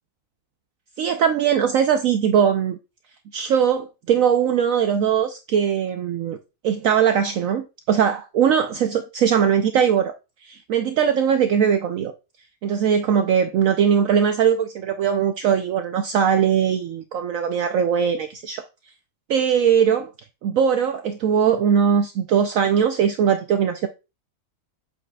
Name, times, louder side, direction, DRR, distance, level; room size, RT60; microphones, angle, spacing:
voice 1, 1.0-2.8 3.3-6.4 6.6-10.1 10.4-12.1 12.6-18.6 19.3-20.1 20.4-23.9, right 8 dB, 65° right, 1.0 m, -20 dB
8.0 x 5.8 x 2.3 m
omnidirectional pair, 1.6 m